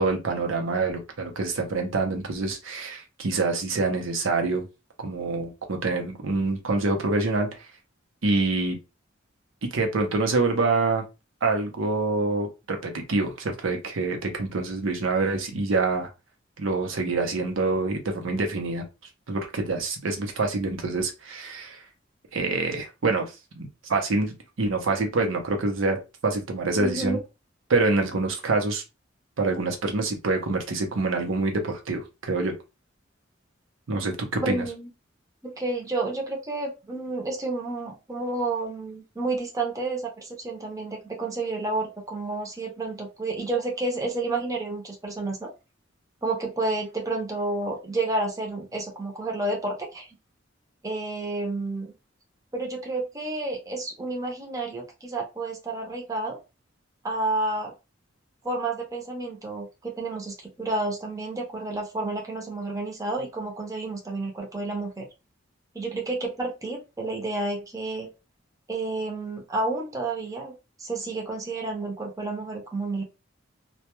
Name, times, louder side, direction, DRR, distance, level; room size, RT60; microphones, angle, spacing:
voice 1, 0.0-4.7 5.0-7.7 8.2-8.8 9.7-11.0 11.4-16.1 16.6-18.8 19.3-21.8 22.3-26.0 26.2-27.2 27.7-28.8 29.4-32.5 33.9-34.6, right 3 dB, 90° right, 0.6 m, -26 dB
voice 2, 26.8-27.2 34.4-34.9 35.4-45.5 46.2-50.1 50.8-51.9 52.5-56.4 57.0-57.7 58.4-65.1 65.7-68.1 68.7-73.0, right 2 dB, 15° right, 0.6 m, -30 dB
2.2 x 2.2 x 2.9 m
head